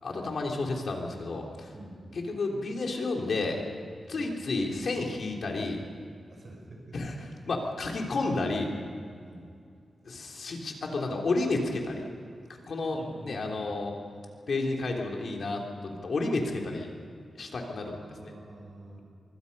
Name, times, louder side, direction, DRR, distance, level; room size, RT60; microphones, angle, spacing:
voice 1, 0.0-1.7 2.1-3.6 4.1-5.8 6.9-8.7 10.0-12.1 12.5-13.9 14.5-16.9 17.3-18.4, left 3 dB, 50° left, 1 dB, 3.2 m, -31 dB
voice 2, 6.3-7.0 9.2-9.5 12.9-13.8 17.7-19.0, right 1 dB, 35° right, 1 dB, 5.2 m, -47 dB
25.0 x 23.5 x 5.4 m, 2.4 s
wide cardioid pair, 175°, 0 cm